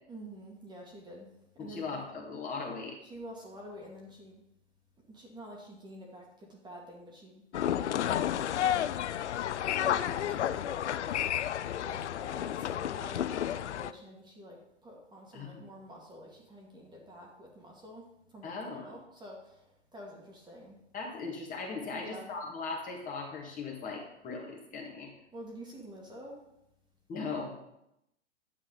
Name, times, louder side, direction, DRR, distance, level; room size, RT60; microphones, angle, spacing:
voice 1, 0.1-1.3 1.5-1.9 3.0-4.4 5.1-8.8 9.8-11.0 11.8-20.8 21.9-22.3 25.3-26.3, equal, 10° right, -2 dB, 2.1 m, -48 dB
voice 2, 1.6-3.0 15.3-15.6 18.4-19.0 20.9-25.1 27.1-27.5, left 4 dB, 20° left, -1 dB, 2.0 m, -38 dB
sound 1, 7.5-13.9, left 10 dB, 75° left, 0.5 m, -31 dB
9.9 x 7.4 x 3.9 m, 0.84 s
figure-of-eight pair, 110°, 35 cm